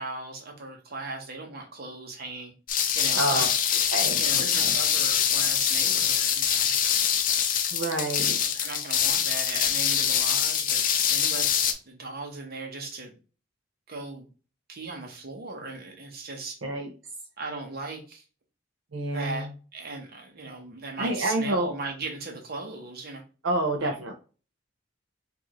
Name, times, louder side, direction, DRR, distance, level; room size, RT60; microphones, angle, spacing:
voice 1, 0.0-2.5 2.9-3.5 4.2-6.7 8.4-10.8 11.1-11.6 11.8-13.1 13.9-14.3 14.7-16.6 17.4-18.2 19.0-23.2 23.8-23.9, right 3 dB, 55° right, 2 dB, 1.1 m, -37 dB
sound 1, 2.7-11.7, left 8 dB, 45° left, 0.5 m, -24 dB
voice 2, 3.1-3.5 3.9-4.7 7.7-8.4 16.6-16.9 18.9-19.5 21.0-21.7 23.4-24.1, right 1 dB, 80° right, 2 dB, 0.7 m, -28 dB
4.6 x 2.7 x 3.0 m, 0.36 s
head